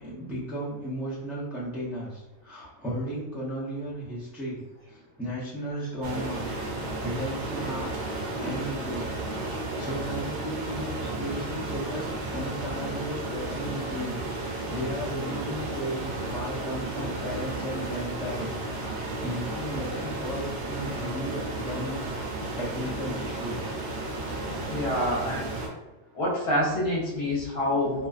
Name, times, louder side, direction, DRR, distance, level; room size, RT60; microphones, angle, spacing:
voice 1, 0.0-4.6 4.9-9.1 9.5-22.0 22.6-23.6, equal, ahead, -8 dB, 0.4 m, -35 dB
sound 1, 6.0-25.7, right 2 dB, 60° right, 0.6 m, -33 dB
voice 2, 24.7-25.6 26.1-28.1, left 1 dB, 55° left, -5 dB, 1.0 m, -27 dB
2.5 x 2.3 x 2.3 m, 1.1 s
omnidirectional pair, 1.4 m